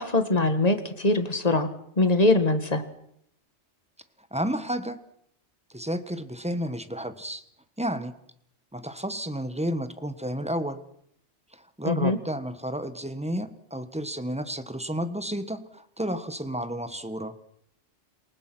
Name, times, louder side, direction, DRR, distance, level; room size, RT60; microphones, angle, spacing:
voice 1, 0.0-1.7 2.0-2.8 11.9-12.2, left 2 dB, 35° left, 9 dB, 1.9 m, -22 dB
voice 2, 4.3-5.0 5.7-7.4 7.8-8.2 8.7-10.8 11.5-17.4, equal, 5° right, 11 dB, 1.3 m, -31 dB
28.0 x 19.0 x 6.2 m, 0.71 s
omnidirectional pair, 1.2 m